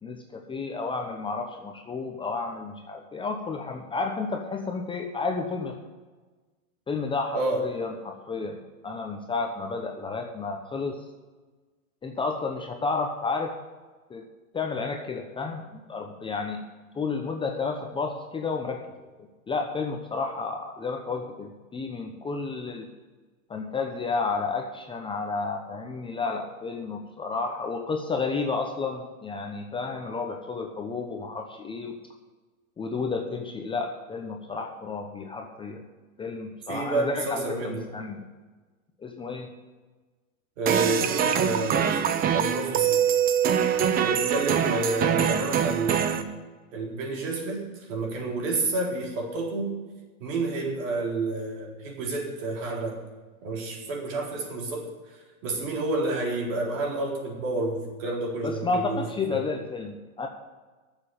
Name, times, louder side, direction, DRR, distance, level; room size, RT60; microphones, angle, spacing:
voice 1, 0.0-5.8 6.9-11.0 12.0-13.5 14.1-14.2 14.5-15.6 15.9-16.6 16.9-18.9 19.5-22.9 23.5-32.0 32.8-35.8 36.2-38.3 39.0-39.5 58.4-60.3, left 4 dB, 10° left, 3 dB, 0.8 m, -31 dB
voice 2, 36.7-37.9 40.6-43.0 44.0-46.2 46.7-49.8 50.2-53.0 53.4-59.5, right 2 dB, 60° right, 0 dB, 4.0 m, -30 dB
sound 1, 40.7-46.2, right 8 dB, 20° right, 0.7 m, -24 dB
9.5 x 7.2 x 9.2 m, 1.3 s
hypercardioid pair, 125°, 43 cm